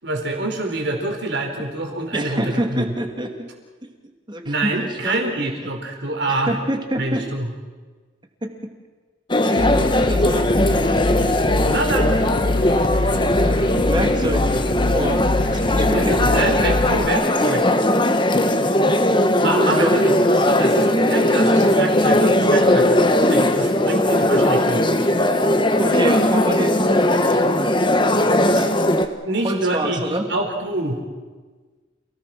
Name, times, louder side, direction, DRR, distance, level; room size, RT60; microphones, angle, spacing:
voice 1, 0.0-2.8 4.4-6.5 7.0-7.5 11.7-12.1 15.9-17.8 19.4-20.1 20.4-24.8 29.2-31.0, right 2 dB, 60° right, 3 dB, 4.5 m, -26 dB
voice 2, 2.1-3.5 4.3-5.2 6.3-7.2 8.4-8.5 9.4-10.7 12.9-14.5 14.9-15.2 15.5-16.2 19.6-20.0 22.6-22.8 25.8-27.4 28.5-28.7 29.4-30.3, right 1 dB, 25° right, 4 dB, 2.6 m, -27 dB
sound 1, 9.3-29.1, left 1 dB, 25° left, 1.4 m, -18 dB
sound 2, 9.6-17.1, left 2 dB, 50° left, 0.8 m, -24 dB
28.5 x 18.0 x 6.1 m, 1.4 s
head